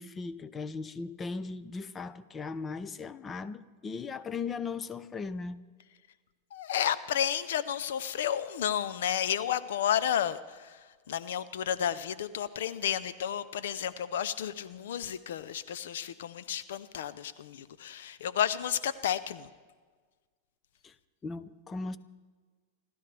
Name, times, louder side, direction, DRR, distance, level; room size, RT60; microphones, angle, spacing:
voice 1, 0.0-5.6 20.8-20.9 21.2-22.0, left 4 dB, 20° left, 15 dB, 0.7 m, -38 dB
voice 2, 6.5-10.8 11.1-19.5, left 9 dB, 80° left, 15 dB, 0.6 m, -32 dB
29.0 x 13.0 x 3.4 m, 1.5 s
hypercardioid pair, 115°, 0 cm